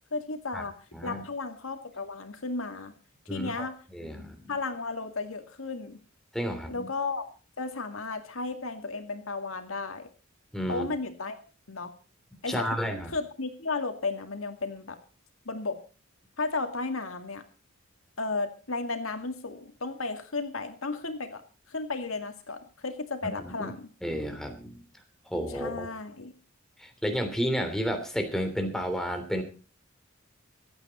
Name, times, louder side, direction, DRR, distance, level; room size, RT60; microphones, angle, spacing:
voice 1, 0.1-0.7 1.0-2.9 3.3-3.8 4.5-6.0 6.7-7.2 7.6-10.1 10.7-11.4 11.7-11.9 12.4-12.7 13.1-15.0 15.5-15.8 16.4-17.4 18.2-21.4 21.7-23.9 25.5-26.3, left 3 dB, 90° left, 7 dB, 2.2 m, -34 dB
voice 2, 0.9-1.2 3.3-3.7 3.9-4.5 6.3-6.9 10.5-10.9 12.5-13.1 23.4-23.7 24.0-24.8 25.3-25.9 26.8-29.4, equal, ahead, 4 dB, 3.2 m, -31 dB
24.5 x 9.1 x 4.3 m, 0.36 s
head